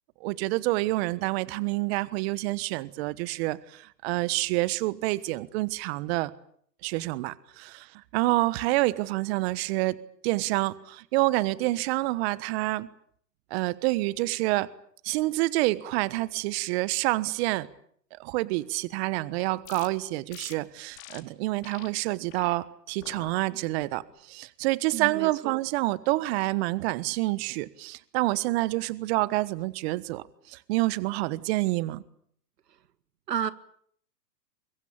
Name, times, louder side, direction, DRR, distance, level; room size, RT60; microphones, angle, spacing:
voice 1, 0.2-6.3 6.8-12.9 13.5-14.7 15.0-17.7 18.2-32.0, right 20 dB, 40° right, 1.3 m, -28 dB
sound 1, 19.6-19.9 20.3-20.5 20.9-21.2 21.6-21.9 22.3-22.5 23.0-23.3 23.8-24.2, left 13 dB, 55° left, 4.2 m, -46 dB
voice 2, 24.9-25.5 33.3-33.5, right 9 dB, 80° right, 2.1 m, -31 dB
24.5 x 23.0 x 8.6 m
hypercardioid pair, 125°, 48 cm